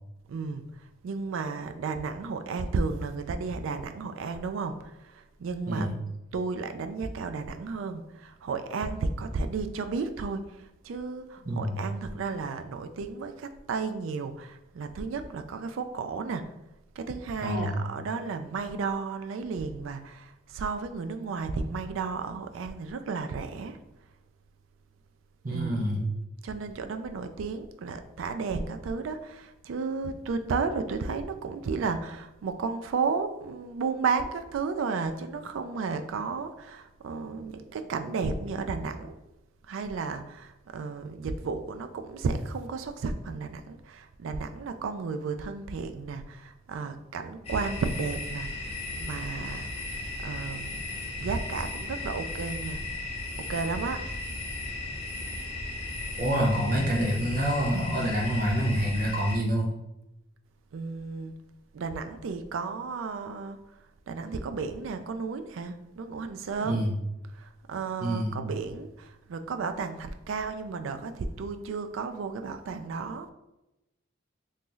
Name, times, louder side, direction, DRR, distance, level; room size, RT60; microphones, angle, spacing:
voice 1, 0.3-0.6 1.0-5.9 6.3-16.4 17.0-23.8 25.5-25.8 26.4-39.1 39.7-48.5 49.0-49.8 50.2-50.8 51.2-52.8 53.4-54.0 60.7-61.3 61.7-63.6 64.1-66.8 67.4-73.3, right 4 dB, 85° right, 8 dB, 0.3 m, -33 dB
voice 2, 11.5-11.8 17.4-17.9 25.4-26.1 56.2-59.7 66.6-66.9 68.0-68.4, equal, 45° right, 0 dB, 0.6 m, -27 dB
sound 1, 47.4-59.4, left 2 dB, 30° left, 0.6 m, -36 dB
2.9 x 2.7 x 3.7 m, 0.93 s
head